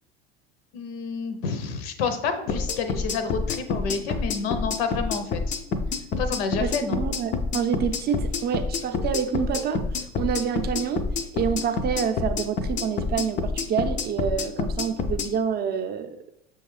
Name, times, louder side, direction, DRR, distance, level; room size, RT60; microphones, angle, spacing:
voice 1, 0.7-5.6 6.2-7.0, left 5 dB, 70° left, 8 dB, 0.7 m, -29 dB
sound 1, 2.5-15.3, left 4 dB, 25° left, 0.4 m, -28 dB
voice 2, 6.6-9.8 10.2-11.0 11.3-16.2, right 7 dB, 30° right, 7 dB, 0.5 m, -27 dB
6.5 x 2.3 x 3.1 m, 0.79 s
hypercardioid pair, 80°, 31 cm